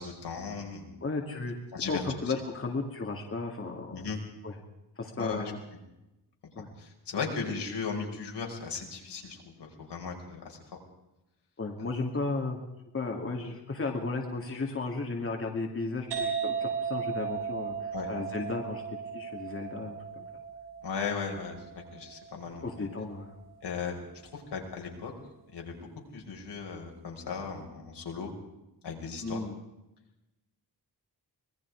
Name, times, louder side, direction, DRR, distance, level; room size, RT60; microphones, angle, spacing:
voice 1, 0.0-0.9 1.7-2.0 3.9-4.2 5.2-5.4 6.8-10.6 17.9-18.1 20.8-22.6 23.6-24.0 24.3-25.1 25.5-25.8 26.1-28.3 28.8-29.4, left 5 dB, 75° left, 1 dB, 5.3 m, -36 dB
voice 2, 1.0-1.5 1.9-4.1 4.4-4.5 5.0-5.6 6.6-6.7 11.6-12.6 12.9-20.2 22.6-23.3 29.2-29.6, left 3 dB, 30° left, 1 dB, 2.7 m, -34 dB
sound 1, 16.1-23.5, right 6 dB, 80° right, 5.8 m, -36 dB
25.5 x 20.5 x 4.9 m, 0.94 s
wide cardioid pair, 155°, 41 cm